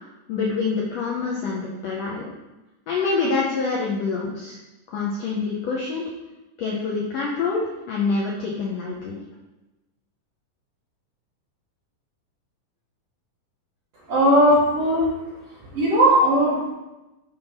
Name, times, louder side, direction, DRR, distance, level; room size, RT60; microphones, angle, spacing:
voice 1, 0.3-2.3 2.9-4.6 4.9-6.1 6.6-9.2, left 4 dB, 80° left, -3 dB, 1.5 m, -26 dB
voice 2, 14.1-15.1 15.7-16.7, equal, 70° right, -5 dB, 1.5 m, -18 dB
6.2 x 3.5 x 5.5 m, 1.0 s
omnidirectional pair, 3.9 m